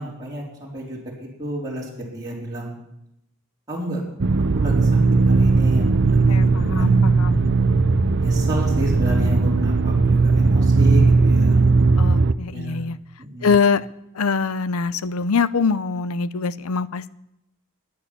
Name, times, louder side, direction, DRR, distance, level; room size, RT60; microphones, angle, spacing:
voice 1, 0.0-2.7 3.7-4.0 4.5-4.9 5.2-7.0 8.2-11.6 12.5-12.8 13.2-13.5, right 1 dB, 15° right, -5 dB, 4.0 m, -30 dB
sound 1, 4.2-12.3, right 3 dB, 55° right, 0.6 m, -17 dB
voice 2, 6.3-7.4 12.0-13.0 13.4-13.9 14.1-17.1, left 5 dB, 90° left, 17 dB, 0.6 m, -23 dB
11.5 x 10.5 x 9.8 m, 0.84 s
head